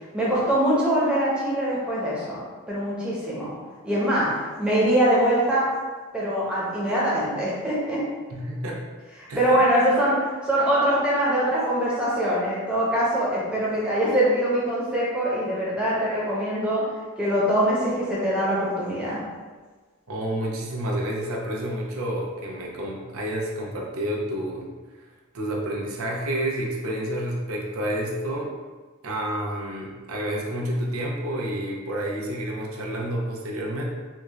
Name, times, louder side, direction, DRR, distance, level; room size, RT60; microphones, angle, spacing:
voice 1, 0.1-2.4 2.7-3.5 3.8-4.3 4.6-5.7 6.1-8.0 9.2-16.8 17.2-19.2, right 1 dB, 5° right, -8 dB, 0.9 m, -23 dB
voice 2, 8.3-8.8 9.3-9.6 20.1-24.7 25.3-28.5 29.0-33.8, right 1 dB, 80° right, -2 dB, 0.6 m, -29 dB
3.5 x 2.4 x 3.0 m, 1.4 s
head